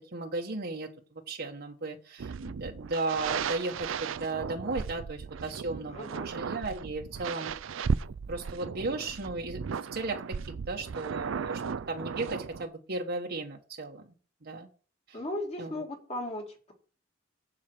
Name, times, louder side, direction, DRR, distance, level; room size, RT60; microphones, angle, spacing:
voice 1, 0.1-0.9 1.3-7.5 8.3-10.4 10.7-14.1 14.4-14.7 15.1-15.2 15.6-15.7, right 3 dB, 55° right, 1 dB, 1.2 m, -35 dB
sound 1, 2.2-12.6, right 6 dB, 75° right, 0.4 m, -36 dB
voice 2, 5.9-6.3 15.1-16.7, left 1 dB, 35° left, 1 dB, 2.7 m, -36 dB
7.7 x 7.5 x 6.0 m, 0.39 s
head